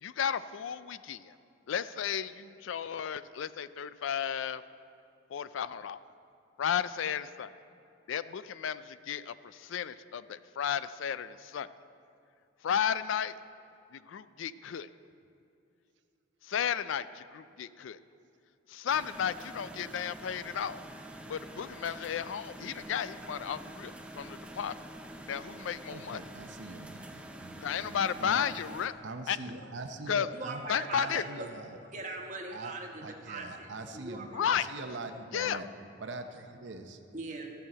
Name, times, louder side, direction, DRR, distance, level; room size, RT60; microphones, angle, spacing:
voice 1, 0.0-1.3 1.7-4.6 5.3-6.0 6.6-7.5 8.1-11.7 12.6-13.3 13.9-14.9 16.4-18.0 18.7-20.8 21.3-24.7 25.3-26.2 27.6-28.9 29.3-29.4 30.1-30.3 30.7-31.2 34.3-34.7 35.3-35.6, left 8 dB, 75° left, 15 dB, 0.4 m, -33 dB
sound 1, 18.9-28.9, right 1 dB, 5° right, 0.5 m, -46 dB
voice 2, 25.9-28.5 29.0-30.6 30.9-31.8 32.5-32.7 33.0-35.7 36.0-37.0, right 3 dB, 60° right, 7 dB, 0.7 m, -43 dB
voice 3, 30.3-31.5 31.9-34.5 35.3-35.5 37.1-37.5, right 2 dB, 40° right, 1 dB, 1.2 m, -41 dB
14.0 x 5.6 x 7.7 m, 2.7 s
head